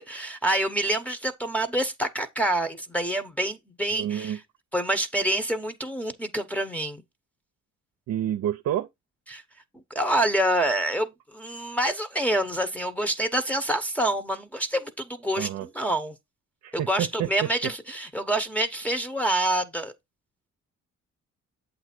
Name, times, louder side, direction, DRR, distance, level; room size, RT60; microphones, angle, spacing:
voice 1, 0.0-4.4 4.7-7.0 9.3-9.4 9.9-15.5 15.7-16.1 16.7-19.9, right 1 dB, 5° left, 0.9 m, -27 dB
voice 2, 3.9-4.4 8.1-8.9 15.4-15.7 16.6-17.7, right 11 dB, 65° right, 0.6 m, -29 dB
7.9 x 2.7 x 5.9 m
cardioid pair, 90°, 30 cm